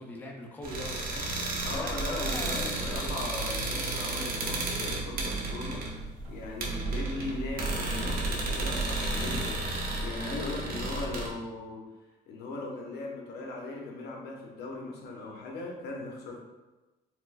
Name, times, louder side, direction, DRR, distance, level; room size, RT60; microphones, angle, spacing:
voice 1, 0.0-3.1, left 1 dB, 10° left, 0 dB, 0.4 m, -42 dB
sound 1, 0.6-11.3, right 2 dB, 60° right, 0.7 m, -32 dB
voice 2, 1.6-9.6 10.0-11.9 12.3-16.4, left 3 dB, 70° left, 0 dB, 0.7 m, -38 dB
4.3 x 2.0 x 2.4 m, 1.1 s
cardioid pair, 110°, 17 cm